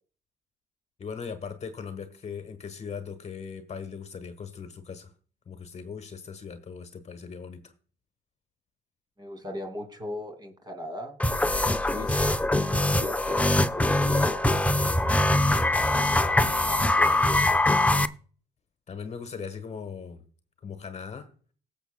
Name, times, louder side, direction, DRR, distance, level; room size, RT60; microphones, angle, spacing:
voice 1, 1.0-5.1 5.5-7.7 18.9-20.2 20.6-21.3, left 6 dB, 40° left, 1.2 m, -39 dB
voice 2, 9.2-11.2 11.6-12.4 12.7-14.8 15.9-17.6, left 1 dB, 25° right, 2.4 m, -39 dB
sound 1, 11.2-18.1, left 1 dB, 10° left, 0.5 m, -23 dB
18.5 x 7.1 x 2.2 m
supercardioid pair, 75°, 17 cm